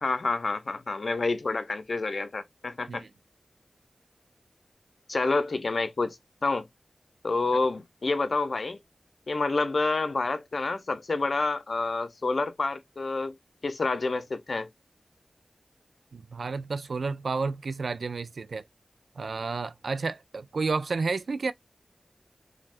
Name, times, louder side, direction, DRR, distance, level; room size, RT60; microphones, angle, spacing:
voice 1, 0.0-3.0 5.1-6.7 7.2-8.8 9.3-13.3 13.6-14.7, left 3 dB, 70° left, 0.5 m, -28 dB
voice 2, 16.1-18.6 19.2-21.5, right 4 dB, 85° right, 0.3 m, -31 dB
3.3 x 2.3 x 2.5 m
wide cardioid pair, 60°, 0 cm